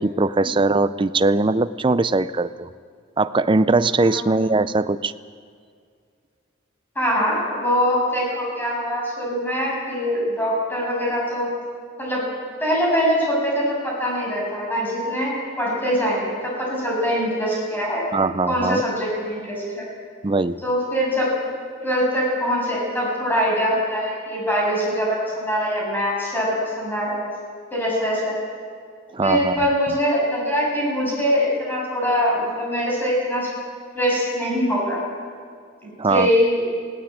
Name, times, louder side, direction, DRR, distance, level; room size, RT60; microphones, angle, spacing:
voice 1, 0.0-2.7 3.2-5.1 18.1-18.8 20.2-20.6 29.1-29.5 36.0-36.3, right 3 dB, 25° right, 13 dB, 0.5 m, -20 dB
voice 2, 4.0-4.5 7.0-11.5 12.0-12.2 12.6-18.0 18.5-19.8 20.6-21.3 21.8-27.2 27.7-28.4 29.2-33.5 33.9-35.0 35.8-36.6, equal, 10° left, -4 dB, 7.3 m, -23 dB
19.0 x 17.5 x 8.9 m, 2.2 s
head